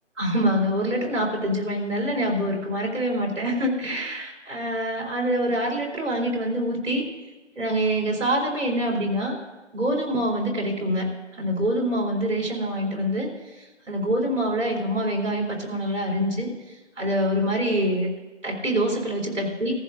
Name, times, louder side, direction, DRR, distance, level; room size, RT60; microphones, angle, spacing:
voice 1, 0.2-7.1 7.6-9.4 9.7-11.1 11.4-13.3 13.6-16.5 17.0-18.1 18.4-19.7, equal, 85° right, -1 dB, 3.7 m, -25 dB
16.5 x 14.5 x 2.5 m, 1.1 s
figure-of-eight pair, 175°, 36 cm